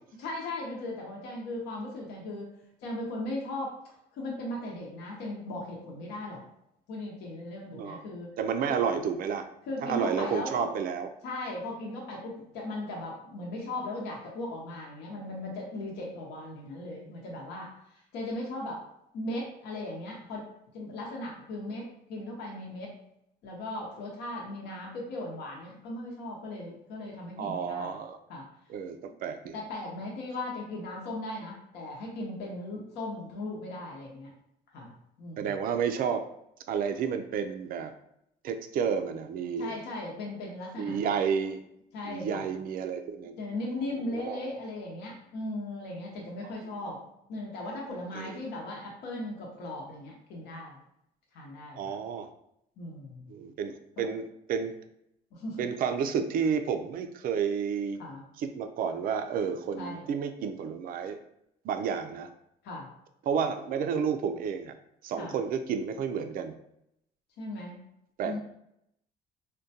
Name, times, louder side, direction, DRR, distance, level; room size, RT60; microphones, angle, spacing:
voice 1, 0.2-2.5 2.8-3.8 4.1-6.4 6.9-8.3 8.7-8.8 9.7-10.7 11.2-18.8 19.1-20.5 20.7-22.9 23.4-28.0 28.3-28.5 29.5-34.3 34.7-34.9 35.2-35.6 39.6-41.1 41.9-42.5 43.4-47.0 47.3-50.8 51.3-52.0 52.8-53.3 54.0-54.1 55.3-55.7 58.0-58.2 59.8-60.1 62.6-62.9 65.2-65.3 67.4-67.8 68.2-68.4, left 1 dB, 80° left, -2 dB, 0.8 m, -37 dB
voice 2, 8.4-9.5 9.8-11.1 27.4-28.2 28.7-29.6 35.4-36.3 36.7-37.9 38.4-39.8 40.8-41.6 42.1-43.3 44.1-44.4 48.2-48.3 51.8-52.3 53.3-54.7 55.6-58.0 58.4-61.2 61.6-62.3 63.3-64.7 65.0-66.5 68.2-68.4, right 7 dB, 60° right, 8 dB, 0.4 m, -31 dB
3.6 x 2.2 x 2.7 m, 0.76 s
cardioid pair, 110°, 17 cm